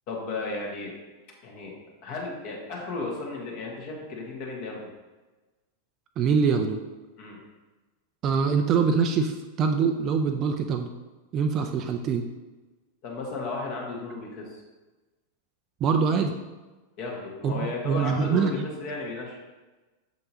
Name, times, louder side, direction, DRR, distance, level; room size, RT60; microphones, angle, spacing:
voice 1, 0.1-0.9 1.4-1.8 2.0-4.9 7.2-7.4 13.0-14.6 17.0-19.4, left 3 dB, 45° left, -1 dB, 1.4 m, -34 dB
voice 2, 6.2-6.8 8.2-10.9 11.3-12.2 15.8-16.3 17.4-18.7, right 5 dB, 35° right, 5 dB, 0.4 m, -24 dB
6.7 x 5.4 x 2.8 m, 1.2 s
figure-of-eight pair, 90°, 0 cm